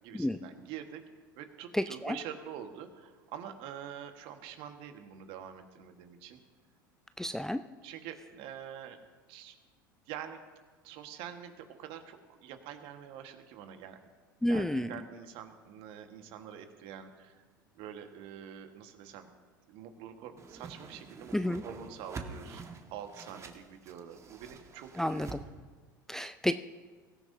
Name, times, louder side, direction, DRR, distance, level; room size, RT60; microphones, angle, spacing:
voice 1, 0.0-1.0 1.3-6.4 7.8-9.0 9.3-9.5 10.1-10.4 10.8-14.0 14.5-17.4 17.7-19.3 19.7-22.6 22.9-25.3, right 9 dB, 55° right, 6 dB, 1.5 m, -46 dB
voice 2, 1.7-2.2 7.2-7.6 14.4-14.9 21.3-21.6 25.0-25.4 26.1-26.5, left 1 dB, 5° left, 10 dB, 0.4 m, -30 dB
Whoosh swoosh swish, 20.4-25.4, right 4 dB, 25° right, 1.5 m, -46 dB
23.0 x 14.5 x 2.8 m, 1.4 s
figure-of-eight pair, 75°, 11 cm